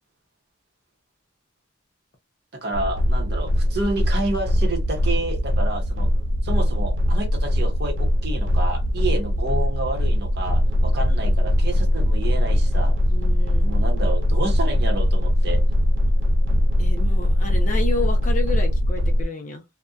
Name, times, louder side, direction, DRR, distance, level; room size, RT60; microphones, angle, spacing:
voice 1, 2.5-6.1 6.4-13.0 13.6-15.6, right 2 dB, 55° right, 0.8 m, -30 dB
sound 1, 2.7-19.3, equal, 70° right, 0.4 m, -21 dB
voice 2, 13.1-13.7 16.8-19.6, left 2 dB, 40° left, 0.6 m, -31 dB
2.5 x 2.1 x 2.4 m
head